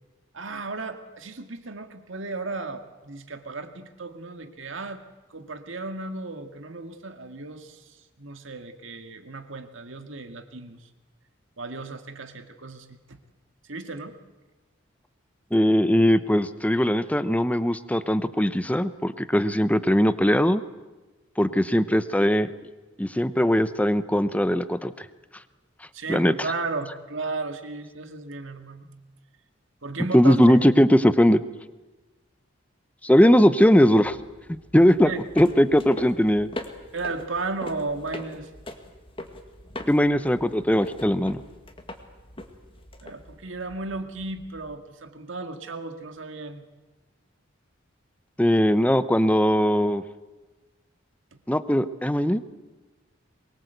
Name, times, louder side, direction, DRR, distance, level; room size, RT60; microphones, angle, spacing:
voice 1, 0.3-5.0 5.3-10.9 11.6-13.2 13.6-14.2 25.9-28.9 29.8-30.6 35.0-35.3 36.9-38.5 43.0-46.7 51.3-51.4, right 3 dB, 65° right, 7 dB, 2.0 m, -35 dB
voice 2, 15.5-20.6 21.4-22.5 23.0-24.9 26.1-26.3 30.1-31.4 33.0-34.2 34.7-36.5 39.9-41.4 48.4-50.0 51.5-52.4, equal, 5° left, 13 dB, 0.8 m, -20 dB
sound 1, 33.8-44.8, left 1 dB, 25° left, 2.0 m, -42 dB
23.0 x 22.0 x 8.2 m, 1.2 s
head